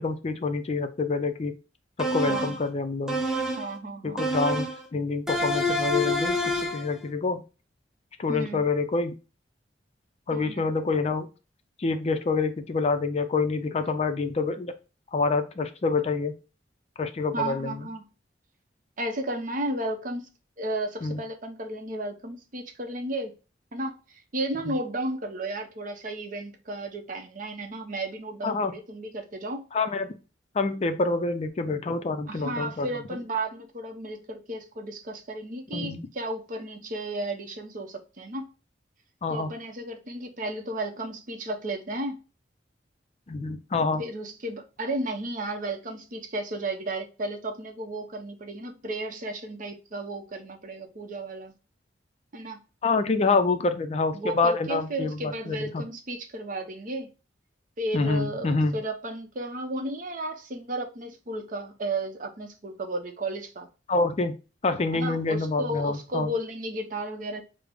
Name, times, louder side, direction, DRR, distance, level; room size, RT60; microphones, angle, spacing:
voice 1, 0.0-1.5 2.0-3.2 4.0-7.4 8.2-9.2 10.3-11.3 11.8-14.7 15.1-16.3 17.0-17.7 21.0-21.2 24.7-24.8 28.4-28.7 29.7-30.1 30.5-32.9 35.7-36.1 39.2-39.5 43.3-44.0 52.8-55.8 57.9-58.8 63.9-64.3 64.6-66.3, left 3 dB, 35° left, 0.4 m, -27 dB
sound 1, 2.0-2.7 3.1-3.7 4.2-4.8 5.3-6.9, equal, 5° right, 0.6 m, -27 dB
voice 2, 2.2-2.6 3.6-4.2 8.3-8.7 10.3-10.7 17.3-18.1 19.0-20.3 20.6-23.4 23.7-24.0 24.3-29.6 32.3-38.5 39.3-42.2 44.0-51.5 52.3-52.6 54.1-57.1 57.8-63.7 64.9-67.4, right 1 dB, 45° right, 0.6 m, -33 dB
5.0 x 2.0 x 3.3 m
head